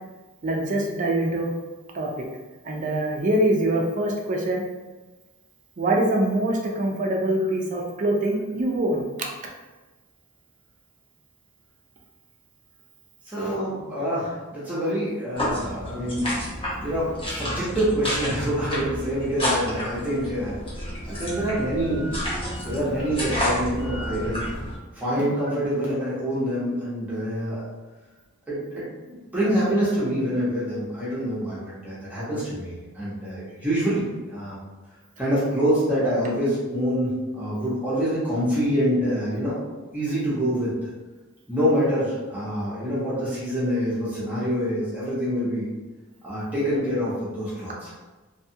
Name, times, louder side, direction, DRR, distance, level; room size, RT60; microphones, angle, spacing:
voice 1, 0.4-1.5 1.9-2.1 2.6-4.6 5.8-9.1, right 1 dB, 40° right, 0 dB, 0.4 m, -24 dB
voice 2, 13.3-16.3 16.8-20.6 21.1-22.1 22.6-24.4 24.9-27.6 28.5-34.6 35.2-39.6 39.9-40.9 41.5-45.7 46.2-47.9, equal, 10° right, -10 dB, 0.8 m, -26 dB
sound 1, 15.3-24.8, equal, 25° left, 0.8 m, -30 dB
2.7 x 2.3 x 2.7 m, 1.2 s
head